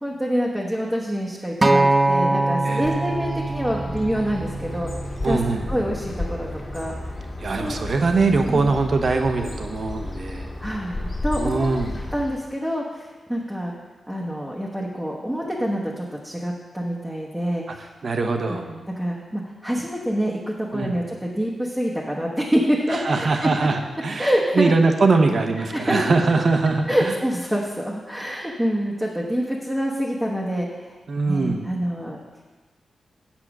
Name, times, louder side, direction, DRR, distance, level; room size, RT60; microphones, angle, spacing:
voice 1, 0.0-4.9 5.3-5.4 5.7-6.9 7.6-7.8 8.4-8.7 10.6-11.7 12.1-13.7 14.1-17.9 18.5-23.5 24.2-24.7 25.6-26.0 26.9-31.0 31.2-32.2, equal, 5° right, -4 dB, 1.1 m, -26 dB
Acoustic guitar, 1.6-5.9 6.7-6.8, right 2 dB, 20° right, 0.5 m, -23 dB
Bird, 2.8-12.5, left 1 dB, 35° left, 2.0 m, -33 dB
voice 2, 5.2-5.6 7.4-10.5 11.4-11.9 18.0-18.7 20.7-20.9 22.9-24.3 24.5-27.1 31.1-31.7, right 3 dB, 55° right, 5 dB, 1.0 m, -22 dB
7.6 x 7.2 x 6.0 m, 1.3 s
wide cardioid pair, 105°, 0 cm